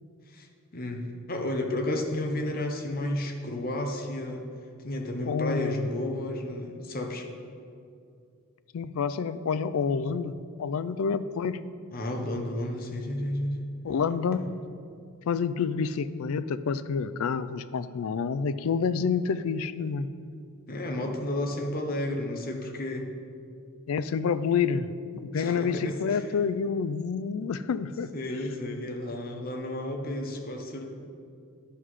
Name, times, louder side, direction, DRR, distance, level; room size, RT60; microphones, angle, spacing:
voice 1, 0.7-4.4 4.8-7.3 11.9-13.7 14.3-14.5 20.7-23.1 25.3-26.3 28.1-30.9, left 1 dB, 40° left, 3 dB, 0.9 m, -32 dB
voice 2, 5.2-5.9 8.7-10.3 10.6-11.6 13.8-14.4 15.3-20.1 23.9-28.1, left 6 dB, 70° left, 14 dB, 0.4 m, -28 dB
9.9 x 5.7 x 4.8 m, 2.4 s
head